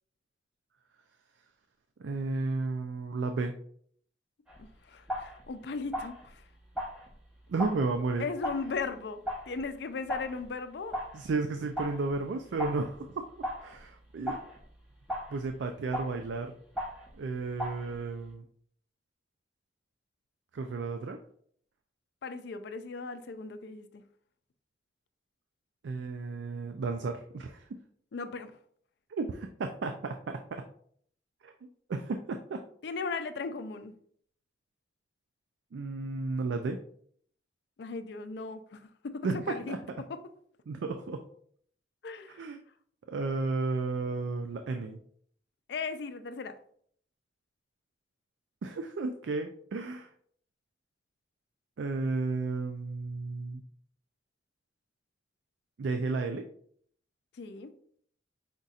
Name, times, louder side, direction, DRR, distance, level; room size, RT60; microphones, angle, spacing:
voice 1, 2.0-3.5 7.5-8.3 11.1-13.2 13.6-14.4 15.3-16.5 17.2-18.4 20.5-21.2 25.8-27.7 29.1-30.6 31.4-31.5 31.9-32.6 35.7-36.8 39.2-40.0 40.7-41.2 42.3-42.6 43.1-45.0 48.6-50.1 51.8-53.6 55.8-56.4, right 3 dB, 80° right, 0.4 m, -33 dB
sound 1, 4.5-18.3, equal, 5° right, 0.8 m, -40 dB
voice 2, 4.6-6.4 8.2-11.0 22.2-24.0 28.1-28.5 32.8-33.9 37.8-39.8 40.1-40.2 42.0-42.4 45.7-46.6 57.4-57.7, left 4 dB, 65° left, 0.4 m, -37 dB
5.1 x 4.0 x 2.4 m
head